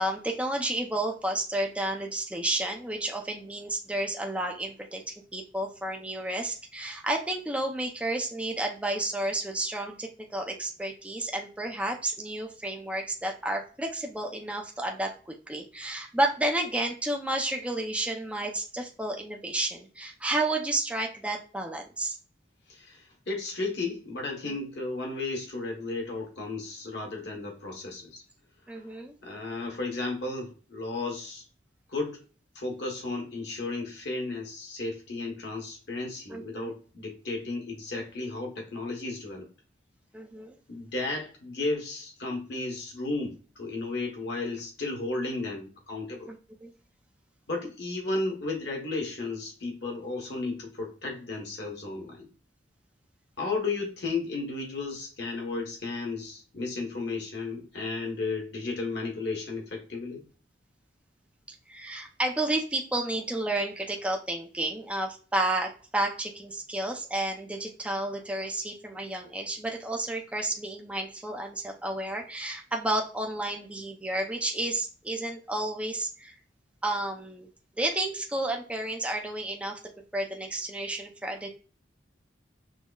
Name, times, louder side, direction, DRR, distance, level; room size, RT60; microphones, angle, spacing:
voice 1, 0.0-22.2 24.4-24.6 28.7-29.1 36.3-36.7 40.1-40.6 46.3-46.7 61.5-76.4 76.8-77.5 77.8-79.8 80.1-81.5, right 1 dB, 5° right, 1 dB, 0.5 m, -31 dB
voice 2, 22.7-28.2 29.2-31.4 31.9-32.2 32.5-39.5 40.7-46.3 47.5-52.3 53.4-60.2, left 3 dB, 60° left, 0 dB, 1.1 m, -34 dB
6.2 x 2.1 x 2.3 m, 0.38 s
head